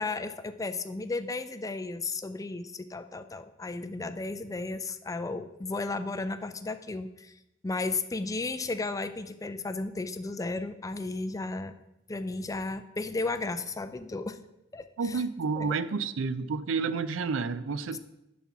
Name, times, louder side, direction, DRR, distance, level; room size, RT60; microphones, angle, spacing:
voice 1, 0.0-7.3 7.6-11.7 12.1-14.4 14.7-15.2 15.6-15.8 17.9-18.0, left 3 dB, 15° left, 10 dB, 0.4 m, -34 dB
voice 2, 15.0-18.0, right 4 dB, 80° right, 13 dB, 0.5 m, -30 dB
10.5 x 4.3 x 6.0 m, 0.88 s
head